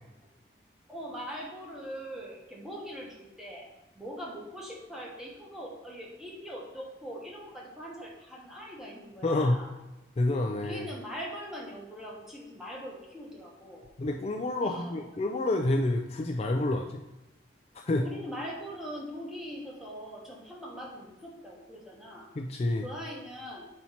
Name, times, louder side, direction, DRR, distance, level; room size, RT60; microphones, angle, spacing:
voice 1, 0.9-3.7 3.9-9.7 10.6-13.8 14.5-15.0 17.9-22.3 22.8-23.7, equal, ahead, -3 dB, 1.1 m, -41 dB
voice 2, 9.2-9.6 10.2-10.9 14.0-17.0 17.9-18.0 22.4-22.8, left 2 dB, 35° left, 2 dB, 0.3 m, -28 dB
4.3 x 4.3 x 5.6 m, 1.0 s
head